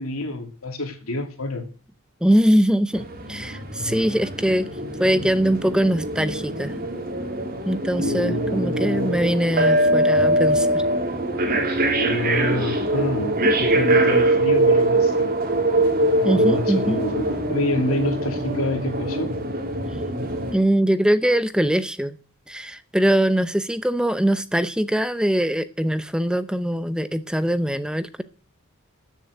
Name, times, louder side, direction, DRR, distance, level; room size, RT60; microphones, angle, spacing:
voice 1, 0.0-1.6 8.0-9.2 11.9-15.3 16.2-19.4, left 1 dB, 80° left, 2.7 m, -27 dB
voice 2, 2.2-4.7 5.0-6.7 7.7-10.8 16.2-17.1 20.5-22.2 22.5-28.2, right 1 dB, 5° right, 0.6 m, -22 dB
sound 1, 2.9-20.6, right 1 dB, 40° right, 3.0 m, -23 dB
13.5 x 7.5 x 8.2 m
head